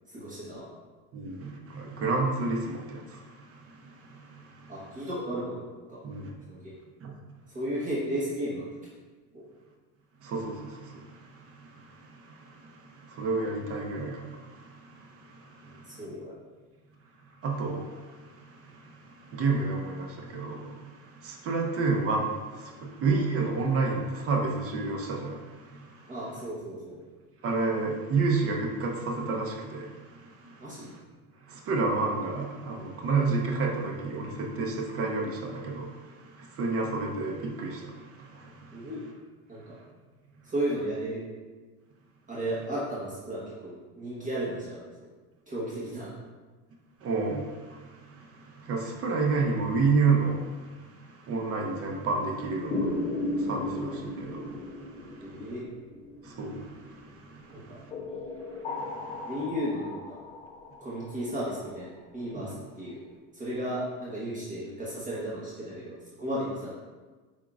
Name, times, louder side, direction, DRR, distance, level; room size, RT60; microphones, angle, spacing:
voice 1, 0.1-0.7 4.7-5.6 5.9-6.0 6.5-6.7 7.5-8.7 9.3-9.5 15.6-16.3 26.1-27.0 30.6-30.9 38.7-39.0 39.5-39.8 40.4-41.2 42.3-45.1 45.5-46.1 55.2-55.6 57.5-57.8 59.2-60.2 60.8-63.0 63.3-66.7, right 1 dB, 25° right, -8 dB, 1.1 m, -34 dB
voice 2, 1.1-4.8 6.0-6.3 7.0-7.2 10.2-16.0 17.4-26.1 27.4-31.0 31.5-38.9 47.0-55.5 56.2-57.9 58.7-59.3 62.3-62.5, right 3 dB, 45° right, 1 dB, 0.6 m, -31 dB
sound 1, 52.7-56.9 57.9-61.7, left 2 dB, 20° left, 0.3 m, -35 dB
5.0 x 3.6 x 2.4 m, 1.3 s
cardioid pair, 135°, 34 cm